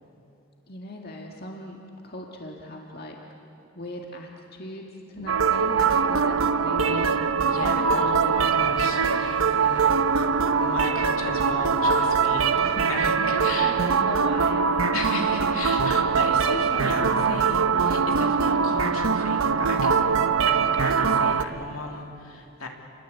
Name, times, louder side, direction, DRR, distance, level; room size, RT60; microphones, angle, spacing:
voice 1, 0.7-3.2 3.7-7.2 7.6-10.0 13.0-14.7 15.2-15.4, left 1 dB, 45° left, 0 dB, 2.1 m, -38 dB
sound 1, 5.1-21.8, right 1 dB, 50° right, 2.8 m, -43 dB
sound 2, 5.3-21.4, right 5 dB, 70° right, 0.9 m, -22 dB
voice 2, 6.8-9.8 10.6-13.8 14.9-22.7, left 2 dB, 75° left, 2 dB, 3.0 m, -35 dB
29.5 x 22.0 x 8.4 m, 2.7 s
head